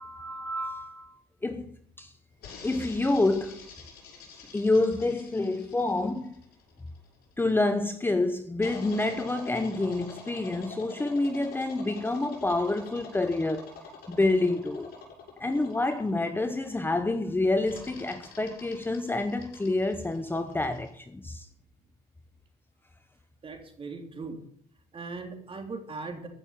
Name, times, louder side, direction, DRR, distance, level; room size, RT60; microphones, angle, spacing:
voice 1, 0.0-1.7 2.0-2.1 2.6-3.7 4.5-6.4 7.4-13.7 14.1-14.9 15.4-21.5, left 2 dB, 10° left, 0.9 m, -28 dB
sound 1, 2.4-7.3 8.6-17.0 17.7-20.9, left 5 dB, 70° left, 7.1 m, -46 dB
voice 2, 23.4-24.4 24.9-26.3, right 4 dB, 30° right, 3.3 m, -39 dB
14.5 x 6.7 x 8.9 m
cardioid pair, 110°, 17 cm